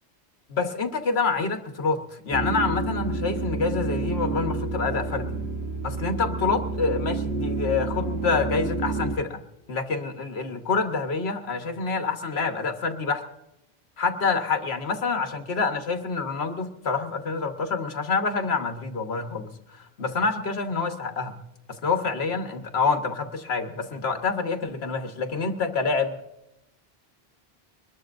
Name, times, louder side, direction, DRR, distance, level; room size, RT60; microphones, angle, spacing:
voice 1, 0.5-5.4 5.8-9.4 9.7-13.2 14.0-21.3 21.7-26.2, left 4 dB, 80° left, 6 dB, 1.5 m, -27 dB
sound 1, 2.3-9.2, right 3 dB, 80° right, 1.5 m, -29 dB
23.0 x 20.5 x 2.6 m, 0.90 s
omnidirectional pair, 1.0 m